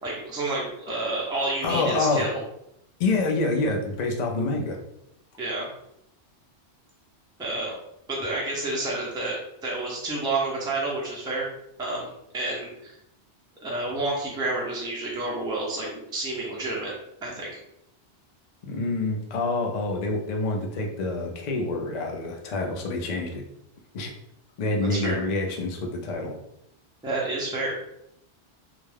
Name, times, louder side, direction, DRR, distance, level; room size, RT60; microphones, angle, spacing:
voice 1, 0.0-2.4 5.4-5.7 7.4-7.7 8.1-11.5 11.8-12.9 13.6-16.9 17.2-17.6 24.8-25.2 27.0-27.8, right 2 dB, 5° right, -4 dB, 0.4 m, -29 dB
voice 2, 1.6-2.3 3.0-4.8 18.6-23.4 23.9-24.1 24.6-26.3, left 2 dB, 60° left, 1 dB, 0.5 m, -27 dB
2.3 x 2.2 x 3.2 m, 0.79 s
omnidirectional pair, 1.1 m